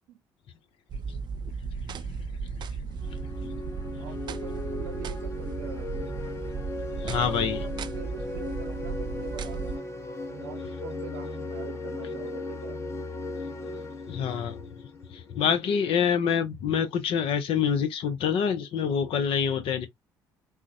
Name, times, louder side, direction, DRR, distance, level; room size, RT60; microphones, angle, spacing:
sound 1, 0.9-9.8, right 5 dB, 45° right, 0.4 m, -35 dB
sound 2, 2.9-15.5, left 2 dB, 25° left, 0.9 m, -37 dB
voice 1, 4.0-6.2 7.0-9.8 10.3-12.8, right 8 dB, 85° right, 0.7 m, -44 dB
voice 2, 7.0-7.7 14.1-19.9, left 7 dB, 60° left, 0.7 m, -26 dB
3.7 x 2.1 x 2.6 m
hypercardioid pair, 55°, 10 cm